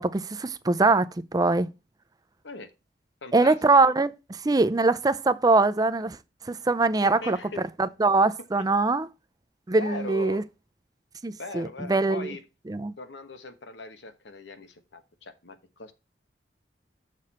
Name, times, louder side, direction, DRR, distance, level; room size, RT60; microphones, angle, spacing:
voice 1, 0.0-1.7 3.3-4.1 4.4-6.2 6.5-7.4 7.8-9.1 9.7-10.4 11.2-12.3 12.7-12.9, right 3 dB, 20° right, 0.5 m, -22 dB
voice 2, 3.2-3.6 3.8-3.9 7.0-7.7 9.8-10.4 11.4-12.4 13.0-15.9, left 3 dB, 85° left, 1.2 m, -40 dB
6.8 x 6.4 x 4.2 m
head